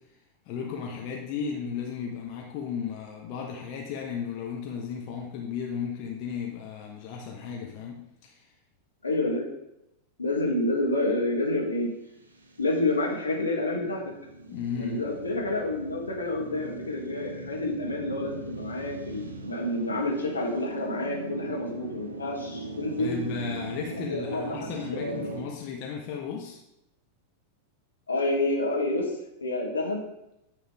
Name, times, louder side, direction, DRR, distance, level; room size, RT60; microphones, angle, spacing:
voice 1, 0.5-8.5 14.5-15.1 23.0-26.6, left 6 dB, 45° left, -1 dB, 0.8 m, -35 dB
voice 2, 9.0-9.5 10.2-11.9 12.6-14.1 14.7-23.2 24.1-25.3 28.1-29.1 29.4-30.0, left 2 dB, 75° left, -2 dB, 1.3 m, -29 dB
sound 1, 12.2-25.5, right 3 dB, 70° right, 0.6 m, -40 dB
9.0 x 3.3 x 3.4 m, 0.87 s
figure-of-eight pair, 90°, 0 cm